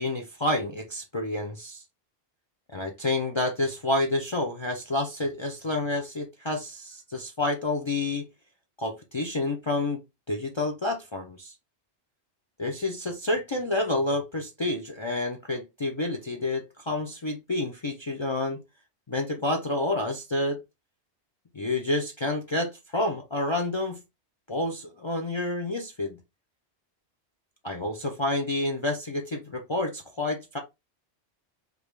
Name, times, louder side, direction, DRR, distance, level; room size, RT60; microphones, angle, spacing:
voice 1, 0.0-1.8 2.7-8.2 8.8-10.0 10.3-11.5 12.6-18.6 19.1-20.6 21.5-24.0 24.5-26.2 27.6-30.6, left 2 dB, 40° left, 0.4 m, -29 dB
3.4 x 2.5 x 3.1 m
omnidirectional pair, 1.1 m